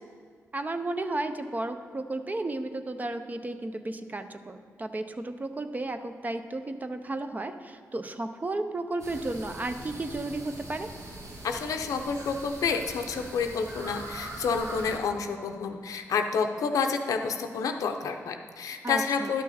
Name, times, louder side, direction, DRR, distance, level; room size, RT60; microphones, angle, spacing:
voice 1, 0.5-10.9 18.8-19.3, right 2 dB, 30° right, 8 dB, 0.7 m, -33 dB
sound 1, 9.0-15.0, right 1 dB, 65° right, 1.7 m, -42 dB
voice 2, 11.4-19.4, left 5 dB, 85° left, 6 dB, 0.6 m, -29 dB
11.5 x 6.2 x 4.2 m, 2.1 s
cardioid pair, 70°, 6 cm